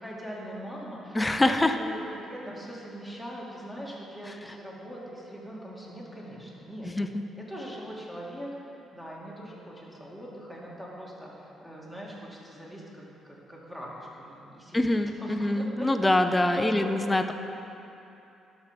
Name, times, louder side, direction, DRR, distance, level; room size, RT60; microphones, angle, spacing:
voice 1, 0.0-6.9 7.4-8.5 8.9-14.9 15.2-16.9, equal, 5° right, -5 dB, 2.4 m, -41 dB
voice 2, 1.1-1.7 7.0-7.1 14.7-17.3, left 1 dB, 15° left, 7 dB, 0.6 m, -24 dB
12.5 x 6.1 x 5.2 m, 2.9 s
cardioid pair, 90°, 0 cm